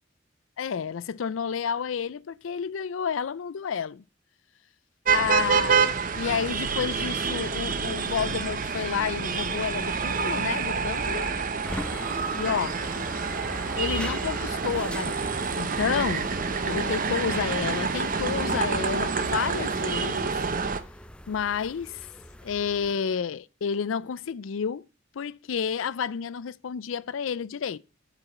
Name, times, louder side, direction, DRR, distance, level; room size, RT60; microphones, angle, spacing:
voice 1, 0.6-4.0 5.1-5.8 6.1-11.3 12.4-12.8 13.8-16.3 16.6-20.3 21.3-22.1 22.4-24.9 25.1-27.8, left 7 dB, 85° left, 0.4 m, -30 dB
sound 1, 5.0-20.8, right 5 dB, 45° right, 0.9 m, -28 dB
salon atmos, 11.6-22.9, left 1 dB, 5° left, 0.5 m, -40 dB
8.5 x 4.9 x 7.5 m
head